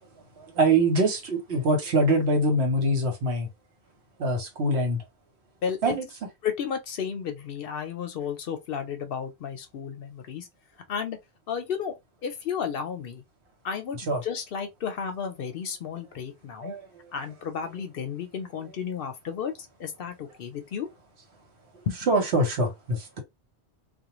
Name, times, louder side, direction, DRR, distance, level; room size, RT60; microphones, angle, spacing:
voice 1, 0.4-3.5 4.2-5.0 5.8-6.1 14.1-14.2 16.6-16.9 22.1-23.2, right 1 dB, 75° right, 1.2 m, -24 dB
voice 2, 5.6-6.0 6.4-10.5 10.9-11.2 11.5-11.9 12.2-13.2 13.6-16.7 17.1-19.5 19.8-20.9 21.9-22.0, left 7 dB, 65° left, 0.7 m, -33 dB
2.3 x 2.2 x 3.0 m
omnidirectional pair, 1.1 m